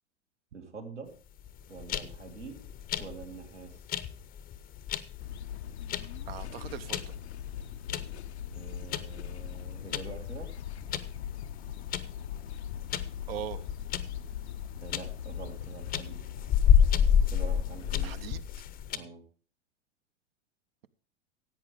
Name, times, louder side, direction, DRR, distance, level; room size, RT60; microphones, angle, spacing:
voice 1, 0.5-1.1 1.7-2.6 3.0-3.8 8.5-10.5 14.8-16.5 17.3-18.2 18.9-19.2, right 4 dB, 80° right, 2.6 m, -45 dB
sound 1, 1.4-19.0, left 8 dB, 25° left, 0.7 m, -30 dB
sound 2, 5.2-18.4, left 10 dB, 70° left, 0.7 m, -40 dB
voice 2, 6.2-7.1 13.3-13.6 18.0-18.5, right 11 dB, 55° right, 0.8 m, -40 dB
16.0 x 8.6 x 3.6 m
figure-of-eight pair, 90°, 35 cm